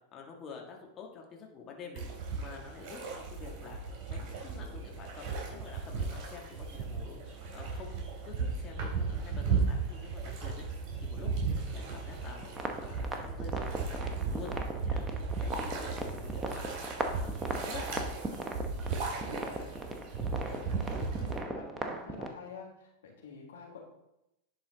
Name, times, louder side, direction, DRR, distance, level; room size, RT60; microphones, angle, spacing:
voice 1, 0.1-2.0 2.4-3.8 4.1-10.6 11.0-14.5 14.8-16.6 17.1-17.9, left 5 dB, 35° left, 0 dB, 1.5 m, -48 dB
sound 1, 2.0-21.4, right 4 dB, 45° right, 3.1 m, -36 dB
sound 2, 12.4-22.3, right 2 dB, 15° right, 0.9 m, -39 dB
voice 2, 19.2-19.8 20.2-23.8, left 5 dB, 75° left, 0 dB, 1.6 m, -49 dB
10.5 x 4.2 x 3.9 m, 0.87 s
hypercardioid pair, 95°, 0 cm